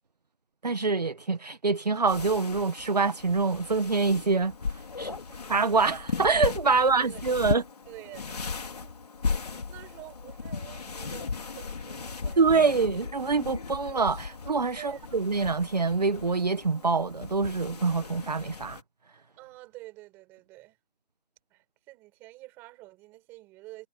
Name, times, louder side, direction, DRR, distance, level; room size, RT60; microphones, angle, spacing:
voice 1, 0.6-5.2 5.5-7.6 12.4-18.8, right 4 dB, 40° right, 1.5 m, -25 dB
sound 1, 2.1-18.8, left 4 dB, 35° left, 4.5 m, -36 dB
voice 2, 6.7-7.2 7.9-8.5 8.8-9.0 9.7-11.3 11.6-12.8 14.8-15.4 19.4-20.8 21.5-23.9, right 19 dB, 5° right, 5.5 m, -48 dB
figure-of-eight pair, 175°, 33 cm